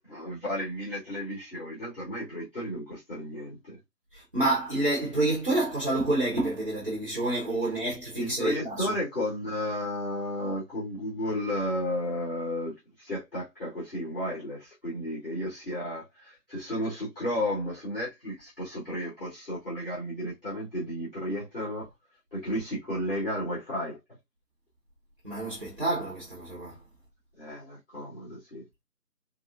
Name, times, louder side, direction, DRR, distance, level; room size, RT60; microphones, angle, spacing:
voice 1, 0.1-3.8 8.1-21.9 22.3-24.0 27.4-28.6, left 1 dB, 35° left, 1.2 m, -33 dB
voice 2, 4.3-8.9 25.2-26.7, right 2 dB, 35° right, 0.8 m, -28 dB
3.5 x 2.4 x 2.4 m
figure-of-eight pair, 170°, 49 cm